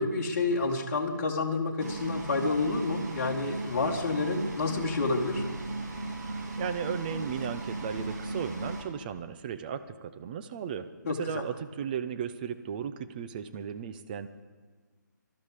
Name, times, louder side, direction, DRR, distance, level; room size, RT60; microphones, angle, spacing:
voice 1, 0.0-5.4 11.1-11.4, left 3 dB, 45° left, -1 dB, 1.9 m, -29 dB
sound 1, 1.8-8.8, right 2 dB, 55° right, 3.1 m, -36 dB
voice 2, 6.6-14.3, right 7 dB, 25° right, 10 dB, 0.8 m, -35 dB
19.5 x 12.5 x 5.0 m, 1.5 s
figure-of-eight pair, 150°, 11 cm